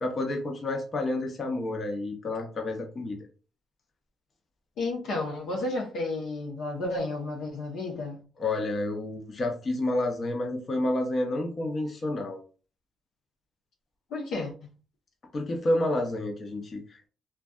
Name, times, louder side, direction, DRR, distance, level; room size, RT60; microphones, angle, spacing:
voice 1, 0.0-3.2 8.4-12.4 15.3-17.1, left 2 dB, 45° left, 0.6 m, -29 dB
voice 2, 4.8-8.2 14.1-14.5, left 2 dB, 80° left, 0.8 m, -32 dB
2.6 x 2.2 x 2.3 m
cardioid pair, 90°, 0 cm